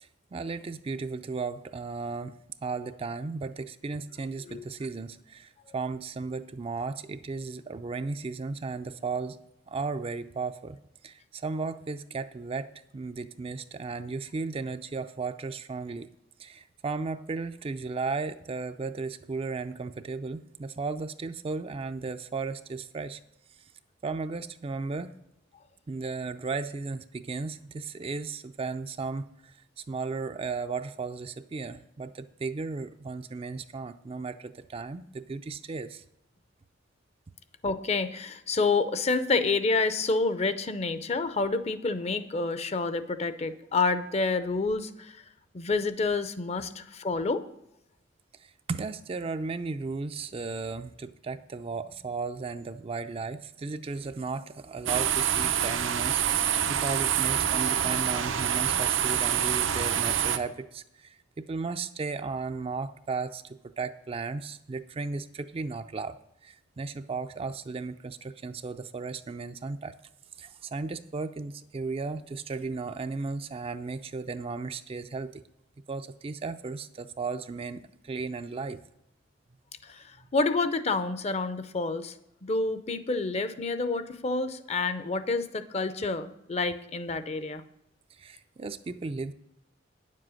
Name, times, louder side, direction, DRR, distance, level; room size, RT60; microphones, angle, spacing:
voice 1, 0.0-9.4 9.7-10.8 11.0-12.7 12.9-16.1 16.4-23.2 24.0-25.1 25.9-29.6 29.9-36.0 48.4-66.2 66.4-69.9 70.4-75.4 75.9-78.8 88.1-89.3, right 4 dB, 30° right, 10 dB, 0.4 m, -35 dB
voice 2, 37.6-45.2 45.5-47.4 79.8-80.0 80.3-82.1 82.4-87.6, left 3 dB, 35° left, 12 dB, 0.6 m, -28 dB
sound 1, 54.9-60.4, right 9 dB, 90° right, 0.7 m, -26 dB
9.6 x 7.5 x 6.2 m, 0.84 s
head